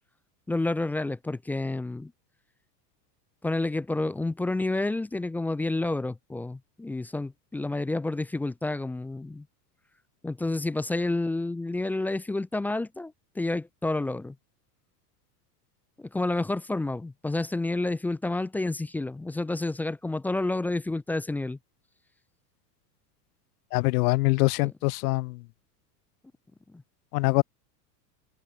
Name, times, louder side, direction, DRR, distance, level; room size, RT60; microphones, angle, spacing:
voice 1, 0.5-2.1 3.4-9.5 10.2-14.3 16.0-21.6 24.6-24.7, left 2 dB, 5° left, 0.3 m, -29 dB
voice 2, 23.7-25.4 27.1-27.4, left 23 dB, 70° left, 0.9 m, -24 dB
supercardioid pair, 130°, 48 cm